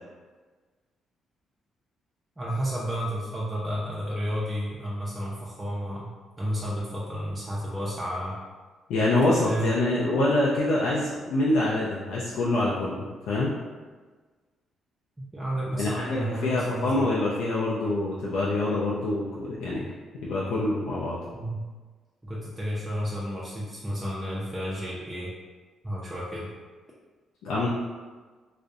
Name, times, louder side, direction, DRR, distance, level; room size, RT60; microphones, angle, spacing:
voice 1, 2.4-6.1 6.4-8.4 9.3-9.7 15.3-17.2 21.3-21.7 22.2-25.3 25.8-26.5, equal, 20° right, -6 dB, 0.4 m, -31 dB
voice 2, 8.9-13.6 15.7-19.8 20.2-21.2 27.4-27.7, left 2 dB, 85° left, -6 dB, 0.3 m, -25 dB
2.4 x 2.0 x 2.6 m, 1.4 s
cardioid pair, 90°, 0 cm